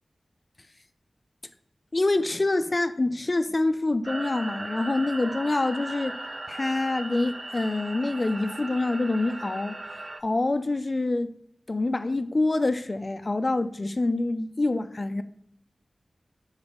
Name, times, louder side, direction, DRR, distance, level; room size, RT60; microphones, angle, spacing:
voice 1, 1.9-6.2 6.5-9.8 10.2-11.3 11.7-15.2, left 2 dB, 40° left, 0.5 m, -26 dB
sound 1, 4.0-10.2, right 2 dB, 40° right, 0.4 m, -37 dB
6.1 x 4.0 x 5.2 m
wide cardioid pair, 60°, 0 cm